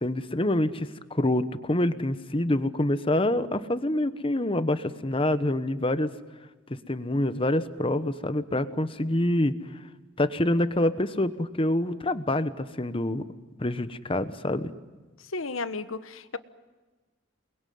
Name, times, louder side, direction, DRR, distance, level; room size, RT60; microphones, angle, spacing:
voice 1, 0.0-6.1 6.9-9.5 10.2-13.2 13.6-14.7, left 1 dB, 25° left, 12 dB, 1.1 m, -26 dB
voice 2, 15.3-16.4, left 3 dB, 85° left, 12 dB, 1.3 m, -33 dB
28.5 x 21.5 x 9.5 m, 1.3 s
head